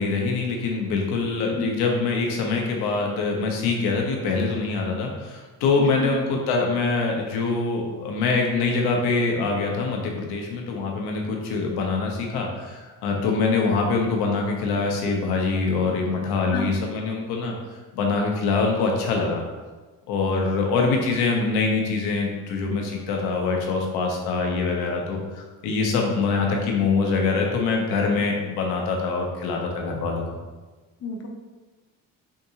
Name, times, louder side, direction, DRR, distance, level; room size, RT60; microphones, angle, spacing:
voice 1, 0.0-17.5 17.9-19.4 20.1-30.2, left 4 dB, 80° left, 1 dB, 0.8 m, -24 dB
voice 2, 1.5-1.6 6.0-6.1 16.5-16.7 20.8-20.9 31.0-31.3, left 3 dB, 40° left, 1 dB, 0.6 m, -30 dB
3.7 x 2.6 x 2.8 m, 1.3 s
supercardioid pair, 70°, 38 cm